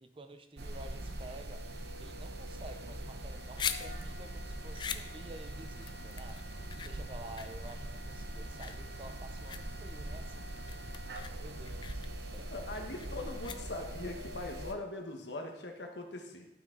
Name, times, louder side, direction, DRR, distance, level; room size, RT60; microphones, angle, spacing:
voice 1, 0.0-1.6 2.0-6.4 6.8-12.0 12.3-12.5, right 1 dB, 30° right, 8 dB, 0.6 m, -51 dB
sound 1, 0.6-14.7, right 1 dB, 70° right, 0.8 m, -42 dB
sound 2, 3.3-14.1, left 7 dB, 25° left, 0.3 m, -43 dB
voice 2, 12.5-16.5, left 2 dB, 85° left, 3 dB, 1.3 m, -41 dB
12.0 x 6.1 x 3.9 m, 0.94 s
head